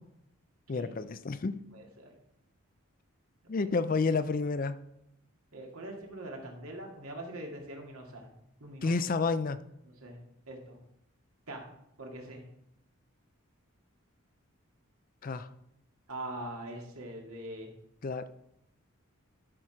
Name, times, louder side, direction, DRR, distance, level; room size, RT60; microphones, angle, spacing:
voice 1, 0.7-1.6 3.5-4.8 8.8-9.6 15.2-15.5 18.0-18.3, left 4 dB, 40° left, 13 dB, 0.4 m, -30 dB
voice 2, 1.7-2.1 5.5-8.3 8.6-9.0 9.9-10.2 10.5-10.8 11.5-11.7 12.0-12.5 16.1-17.7, right 1 dB, 75° right, 1 dB, 2.2 m, -42 dB
12.5 x 6.0 x 4.9 m, 0.80 s
head